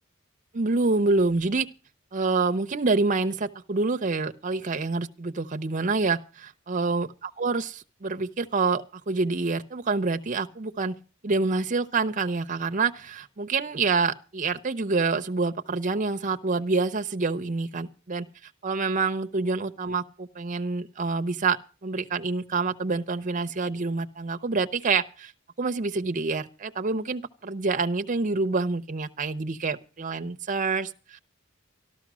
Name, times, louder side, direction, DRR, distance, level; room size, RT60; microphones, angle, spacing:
voice 1, 0.5-1.7 2.1-11.0 11.2-25.3 25.6-31.2, right 3 dB, 40° right, 0.7 m, -27 dB
13.0 x 12.5 x 6.1 m
head